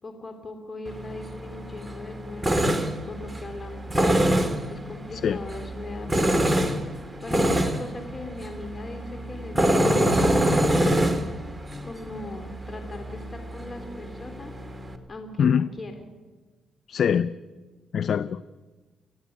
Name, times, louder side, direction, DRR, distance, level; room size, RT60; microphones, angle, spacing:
voice 1, 0.0-4.3 4.7-11.1 11.8-14.5 15.1-15.9, left 2 dB, 35° left, 6 dB, 3.0 m, -40 dB
Tools, 0.9-15.0, equal, 10° right, 2.5 m, -26 dB
voice 2, 16.9-17.3 17.9-18.5, left 7 dB, 60° left, 15 dB, 0.6 m, -23 dB
29.5 x 10.5 x 9.5 m, 1.3 s
cardioid pair, 80°, 0 cm